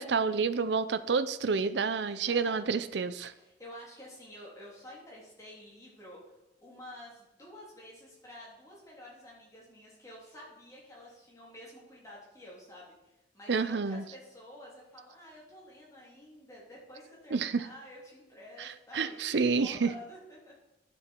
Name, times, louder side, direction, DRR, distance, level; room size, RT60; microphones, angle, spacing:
voice 1, 0.0-3.3 13.5-14.0 17.3-17.7 18.6-19.9, right 5 dB, 75° right, 13 dB, 0.6 m, -29 dB
voice 2, 2.1-2.6 3.4-6.2 6.6-20.5, left 1 dB, 20° left, -4 dB, 3.5 m, -50 dB
12.0 x 7.1 x 4.5 m, 0.93 s
head